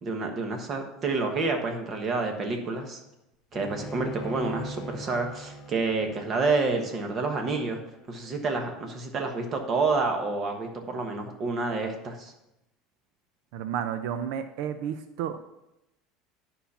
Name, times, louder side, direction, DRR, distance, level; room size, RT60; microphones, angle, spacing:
voice 1, 0.0-3.0 3.5-7.8 8.1-12.3, right 3 dB, 30° right, 4 dB, 1.3 m, -29 dB
Bowed string instrument, 3.5-8.8, equal, 30° left, 1.3 m, -42 dB
voice 2, 13.5-15.4, right 9 dB, 65° right, 8 dB, 0.6 m, -32 dB
9.3 x 5.8 x 5.7 m, 0.90 s
cardioid pair, 165°, 0 cm